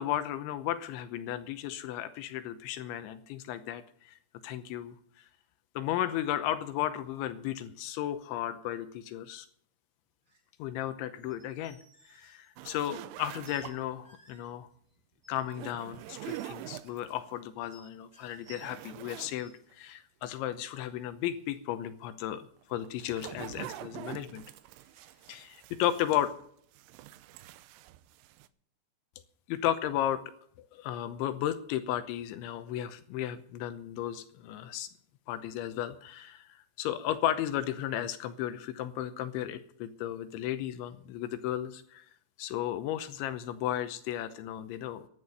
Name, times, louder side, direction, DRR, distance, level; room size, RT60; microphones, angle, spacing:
voice 1, 0.0-5.0 5.8-9.5 10.6-11.8 12.1-14.7 15.3-24.4 25.3-26.3 29.5-30.2 30.7-34.9 35.3-42.0 42.4-45.1, left 12 dB, 80° left, 10 dB, 3.1 m, -34 dB
sound 1, 10.3-10.5 11.2-12.9 13.4-13.7 14.0-14.5 15.2-15.5 15.9-16.9 17.7-18.9 19.3-19.5 19.9-20.0, right 3 dB, 20° right, 3.1 m, -59 dB
sound 2, 12.6-14.0 15.4-17.2 17.7-17.8 18.2-19.4 19.7-19.8 22.6-26.4 26.7-28.5, right 15 dB, 85° right, 3.2 m, -45 dB
16.0 x 11.0 x 5.5 m, 0.64 s
omnidirectional pair, 5.7 m